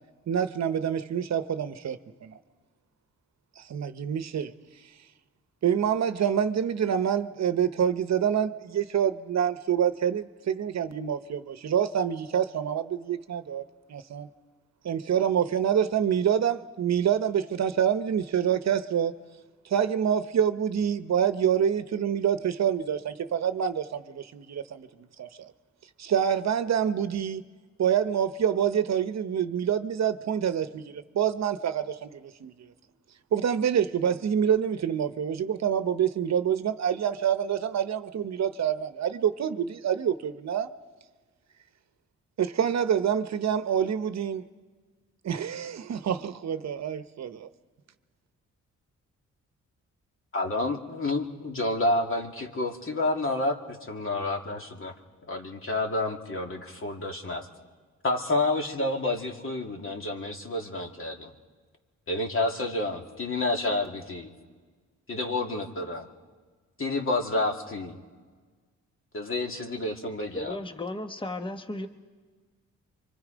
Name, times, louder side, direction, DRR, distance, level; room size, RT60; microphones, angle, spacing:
voice 1, 0.3-2.4 3.6-4.5 5.6-13.6 13.9-14.3 14.8-19.1 19.7-25.5 26.0-27.4 27.8-32.7 33.3-40.7 42.4-44.4 45.2-47.5, right 8 dB, 60° right, 11 dB, 0.9 m, -27 dB
voice 2, 50.3-54.9 55.3-57.5 58.0-61.3 62.1-64.3 65.1-66.1 66.8-68.0 69.1-70.6, left 2 dB, 45° left, 2 dB, 2.4 m, -29 dB
voice 3, 70.3-71.9, left 2 dB, 15° left, 7 dB, 1.2 m, -34 dB
29.5 x 25.0 x 5.1 m, 1.4 s
cardioid pair, 80°, 30 cm